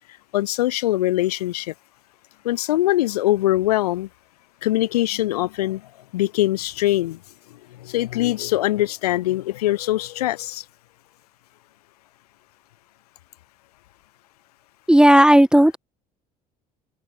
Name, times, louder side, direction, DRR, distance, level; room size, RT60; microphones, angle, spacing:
voice 1, 0.3-1.7 2.4-4.1 4.6-5.8 6.1-7.2 7.8-10.6, left 15 dB, 90° left, 0.4 m, -22 dB
voice 2, 14.9-15.8, equal, 5° right, 0.3 m, -13 dB
hypercardioid pair, 65°, 19 cm